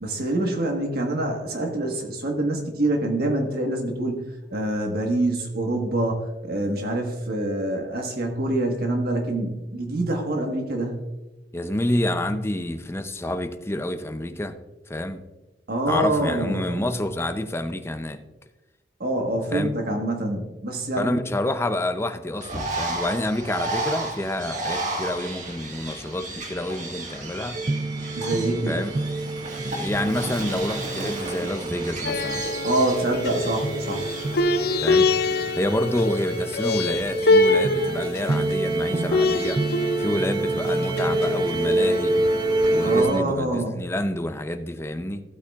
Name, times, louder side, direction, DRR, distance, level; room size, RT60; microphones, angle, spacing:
voice 1, 0.0-4.2 4.5-11.0 15.7-16.8 19.0-21.2 28.2-28.8 32.6-34.0 42.8-43.8, right 1 dB, 60° right, 2 dB, 1.5 m, -25 dB
voice 2, 11.5-14.5 14.9-15.2 15.9-18.2 19.5-19.7 21.0-27.6 28.7-28.9 29.7-32.4 34.8-35.1 35.6-39.6 40.0-42.1 42.7-45.2, left 1 dB, 15° left, 8 dB, 0.6 m, -28 dB
Bird, 22.4-34.4, right 2 dB, 45° right, 1.7 m, -33 dB
sound 1, 27.5-43.2, right 2 dB, 25° right, 0.3 m, -27 dB
sound 2, 32.0-43.0, left 2 dB, 60° left, 0.6 m, -25 dB
15.0 x 8.4 x 2.4 m, 1.1 s
head